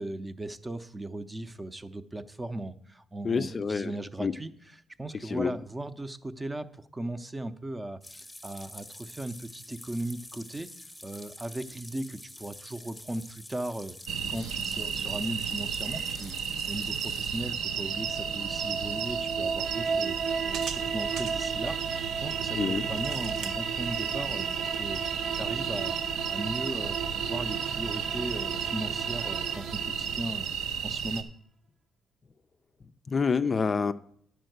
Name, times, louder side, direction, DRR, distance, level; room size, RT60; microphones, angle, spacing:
voice 1, 0.0-4.5 5.0-10.7 11.0-14.0 14.3-16.4 16.7-20.2 20.4-25.0 25.4-26.0 26.3-30.6 30.8-31.3, right 1 dB, 15° right, 10 dB, 0.6 m, -37 dB
voice 2, 3.2-3.9 4.2-4.3 5.3-5.5 22.5-22.9 33.1-33.9, left 5 dB, 35° left, 10 dB, 0.4 m, -27 dB
sound 1, 8.0-17.5, left 1 dB, 5° left, 1.0 m, -47 dB
sound 2, 14.1-31.2, right 7 dB, 85° right, 0.7 m, -33 dB
sound 3, 17.7-30.7, right 6 dB, 50° right, 0.3 m, -36 dB
10.5 x 4.5 x 7.8 m, 0.65 s
cardioid pair, 90°, 0 cm